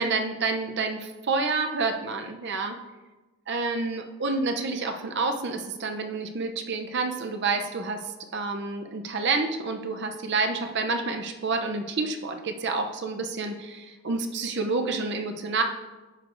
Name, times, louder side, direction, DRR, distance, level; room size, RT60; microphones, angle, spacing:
voice 1, 0.0-2.8 3.5-15.6, right 3 dB, 50° right, 5 dB, 0.6 m, -29 dB
9.6 x 6.4 x 2.6 m, 1.2 s
head